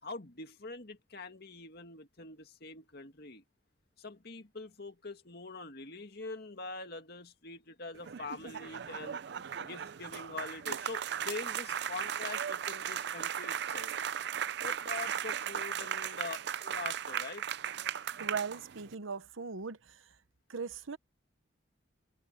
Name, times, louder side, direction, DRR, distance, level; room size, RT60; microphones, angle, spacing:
voice 1, 0.0-3.4 4.0-9.2 9.6-13.9 14.6-17.4, left 3 dB, 50° left, 2.1 m, -44 dB
sound 1, 7.9-18.9, right 9 dB, 55° right, 0.5 m, -37 dB
voice 2, 18.2-20.1 20.5-21.0, right 5 dB, 80° right, 1.0 m, -39 dB
head